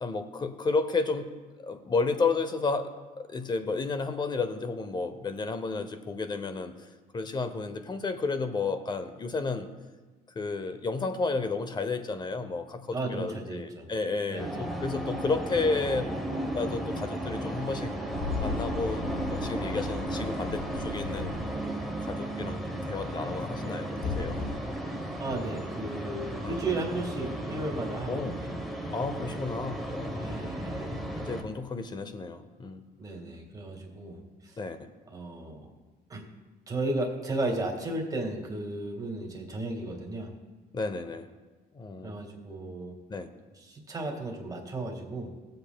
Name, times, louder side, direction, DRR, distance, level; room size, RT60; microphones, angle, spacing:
voice 1, 0.0-1.3 1.6-6.7 7.1-9.7 10.4-16.1 16.5-17.9 18.4-21.4 22.0-24.4 26.4-26.6 28.0-28.4 28.9-32.8 34.6-34.9 40.7-41.3 41.7-42.2 43.1-43.3, left 4 dB, 25° left, 10 dB, 0.7 m, -32 dB
voice 2, 12.9-13.9 14.3-14.6 25.2-28.7 30.2-31.0 33.0-34.6 35.1-35.7 36.1-36.3 36.7-40.3 42.0-42.9 43.6-45.3, right 2 dB, 20° right, 1 dB, 1.8 m, -34 dB
sound 1, 14.4-31.4, right 1 dB, ahead, 1.0 m, -34 dB
sound 2, 18.1-21.9 24.0-24.6, left 4 dB, 70° left, 0.8 m, -36 dB
17.0 x 7.8 x 2.3 m, 1.3 s
cardioid pair, 110°, 17 cm